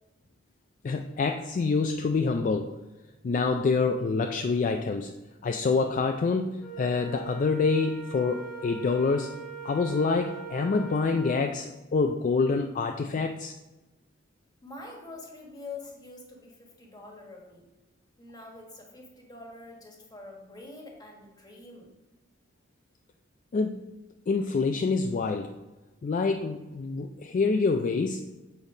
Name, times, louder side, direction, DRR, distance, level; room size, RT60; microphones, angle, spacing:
voice 1, 0.8-2.7 3.2-5.1 5.4-9.4 9.6-13.6 23.5-23.8 24.3-25.5 26.0-28.3, left 4 dB, 40° left, 6 dB, 0.3 m, -26 dB
Wind instrument woodwind instrument, 6.6-11.5, right 7 dB, ahead, 1.4 m, -41 dB
voice 2, 14.6-17.6 18.2-21.9, left 3 dB, 20° left, 0 dB, 1.3 m, -45 dB
7.1 x 4.0 x 5.0 m, 1.1 s
head